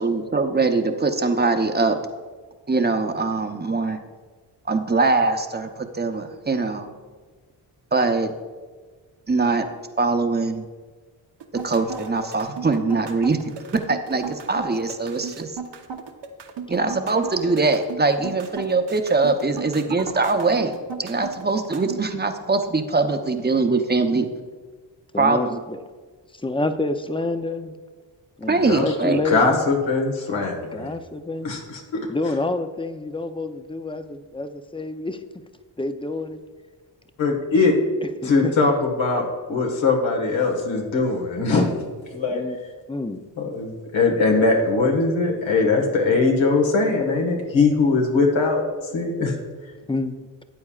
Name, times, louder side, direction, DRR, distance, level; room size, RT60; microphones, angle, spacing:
voice 1, 0.0-2.0 2.7-4.0 4.7-6.9 7.9-8.3 9.3-9.7 10.0-10.7 11.6-15.6 16.7-20.7 21.0-24.3 25.2-25.6 28.5-29.2, right 3 dB, 20° right, 6 dB, 0.8 m, -22 dB
sound 1, 11.4-22.0, right 6 dB, 65° right, 1.0 m, -35 dB
voice 2, 25.1-25.8 26.4-27.8 28.4-29.7 30.7-31.6 32.1-35.2 35.8-36.4 38.0-38.5 42.3-42.6 42.9-43.2 49.9-50.2, left 2 dB, 10° left, 9 dB, 0.5 m, -28 dB
voice 3, 28.6-28.9 29.2-30.9 31.4-32.1 37.2-37.8 38.2-41.7 42.1-42.4 43.4-48.6 48.9-49.3, left 3 dB, 85° left, 1 dB, 1.7 m, -21 dB
13.5 x 8.6 x 2.4 m, 1.4 s
cardioid pair, 75°, 45 cm